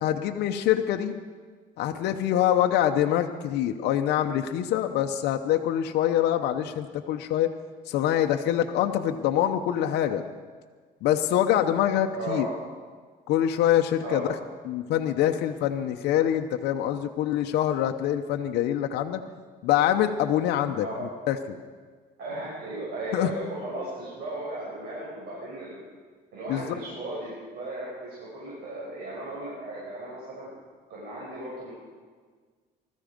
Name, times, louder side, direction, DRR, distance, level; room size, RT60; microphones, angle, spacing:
voice 1, 0.0-1.1 1.8-7.5 7.9-10.2 11.0-12.5 13.3-14.3 14.7-19.2 19.6-21.6 23.1-23.3 26.5-26.7, left 11 dB, 80° left, 4 dB, 0.8 m, -25 dB
voice 2, 12.1-12.6 14.0-14.2 20.8-21.0 22.2-25.8 26.3-30.5 30.9-31.7, right 1 dB, 70° right, -7 dB, 6.3 m, -36 dB
20.0 x 14.0 x 5.2 m, 1.5 s
cardioid pair, 110°, 17 cm